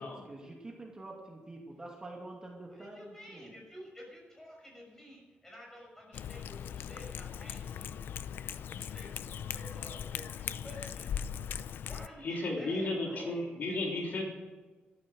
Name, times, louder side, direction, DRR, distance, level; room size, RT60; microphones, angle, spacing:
voice 1, 0.0-3.5, right 2 dB, 20° right, -1 dB, 2.4 m, -47 dB
voice 2, 2.7-7.9 8.5-11.1 11.8-13.3, left 1 dB, 10° left, -1 dB, 6.0 m, -51 dB
Cat, 6.1-12.1, left 8 dB, 75° left, 0.5 m, -39 dB
voice 3, 12.2-14.3, left 2 dB, 60° left, -1 dB, 3.4 m, -34 dB
13.5 x 13.5 x 6.3 m, 1.3 s
wide cardioid pair, 175°, 4 cm